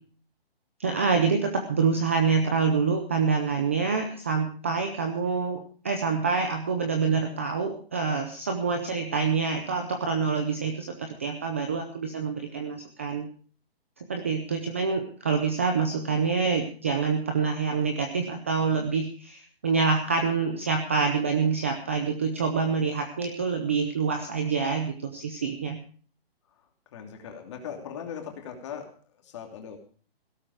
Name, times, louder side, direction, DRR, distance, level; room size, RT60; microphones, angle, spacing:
voice 1, 0.8-13.3 14.1-25.8, right 5 dB, 15° right, 5 dB, 0.6 m, -26 dB
voice 2, 26.6-29.8, left 7 dB, 30° left, 3 dB, 2.9 m, -40 dB
17.0 x 12.5 x 4.9 m, 0.42 s
hypercardioid pair, 175°, 31 cm